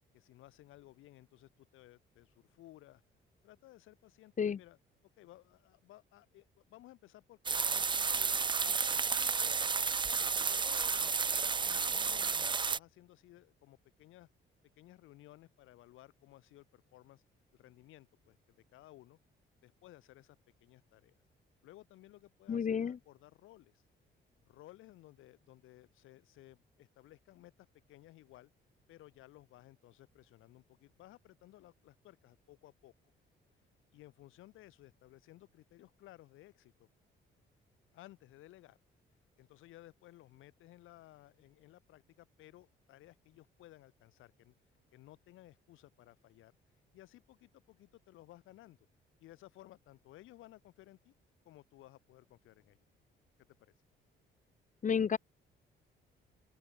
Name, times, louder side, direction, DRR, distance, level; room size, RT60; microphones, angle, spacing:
voice 1, 0.1-3.0 3.4-4.8 5.2-9.6 10.1-14.3 14.8-17.2 17.5-19.2 19.6-21.2 21.6-23.8 24.5-28.5 28.9-32.9 33.9-36.9 37.9-38.8 39.4-44.5 44.9-46.5 46.9-48.8 49.2-51.1 51.4-52.9, left 16 dB, 90° left, 4.6 m, -58 dB
sound 1, 7.5-12.8, right 5 dB, 25° right, 0.5 m, -32 dB
voice 2, 22.5-23.0 54.8-55.2, left 7 dB, 40° left, 1.0 m, -31 dB
open air
cardioid pair, 90°, 20 cm